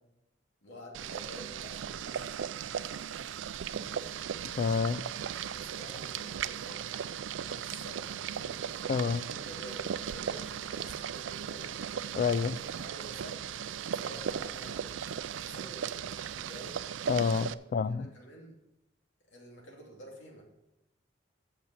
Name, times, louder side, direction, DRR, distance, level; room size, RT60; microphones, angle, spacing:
voice 1, 0.6-2.4 3.7-4.1 5.2-6.9 7.4-8.6 9.1-11.8 12.7-16.9 17.7-18.6 19.3-20.4, equal, 75° left, 2.8 m, -50 dB
Boiling, 0.9-17.5, right 8 dB, 90° right, 0.4 m, -37 dB
voice 2, 4.5-5.1 8.9-9.3 12.1-12.6 17.1-18.1, left 5 dB, 45° left, 0.3 m, -29 dB
8.3 x 6.9 x 7.3 m
head